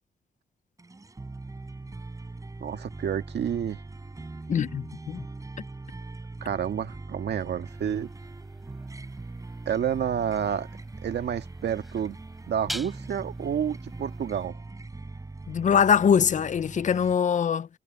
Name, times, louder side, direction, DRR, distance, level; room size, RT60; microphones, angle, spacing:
sound 1, 0.8-17.1, right 2 dB, 20° right, 4.4 m, -41 dB
voice 1, 2.6-3.8 6.4-8.1 9.7-10.7 11.0-12.2 12.5-14.6, right 9 dB, 85° right, 2.0 m, -29 dB
voice 2, 4.5-5.2 15.5-17.7, left 7 dB, 45° left, 0.5 m, -23 dB
sound 2, 7.7-14.5, equal, ahead, 3.8 m, -46 dB
wide cardioid pair, 140°, 17 cm